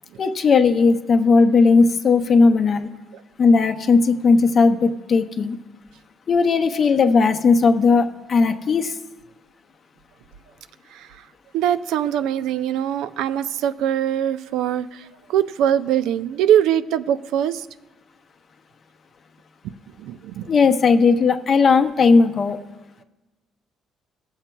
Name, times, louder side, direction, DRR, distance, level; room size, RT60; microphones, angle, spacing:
voice 1, 0.2-2.9 3.4-5.6 6.3-8.9 20.5-22.6, left 4 dB, 40° left, 7 dB, 0.6 m, -17 dB
voice 2, 11.5-17.7 20.0-20.5, right 10 dB, 85° right, 13 dB, 0.3 m, -22 dB
20.5 x 7.2 x 2.2 m, 1.1 s
cardioid pair, 125°, 0 cm